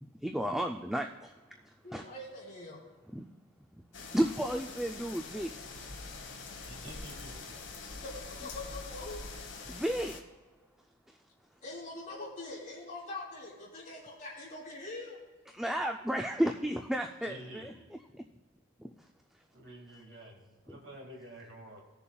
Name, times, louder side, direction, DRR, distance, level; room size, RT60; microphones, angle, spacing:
voice 1, 0.0-1.1 1.9-2.0 3.1-3.3 4.1-5.5 9.7-10.2 15.5-17.7 18.2-18.3 18.8-18.9, equal, ahead, 3 dB, 0.3 m, -32 dB
voice 2, 1.8-2.8 8.0-9.2 11.6-15.2, left 2 dB, 35° left, -5 dB, 3.0 m, -43 dB
sound 1, 3.9-10.2, left 3 dB, 60° left, 1.2 m, -44 dB
voice 3, 6.6-7.6 17.2-17.9 19.5-21.8, right 1 dB, 60° right, 0 dB, 2.0 m, -49 dB
18.0 x 6.9 x 2.3 m, 1.3 s
head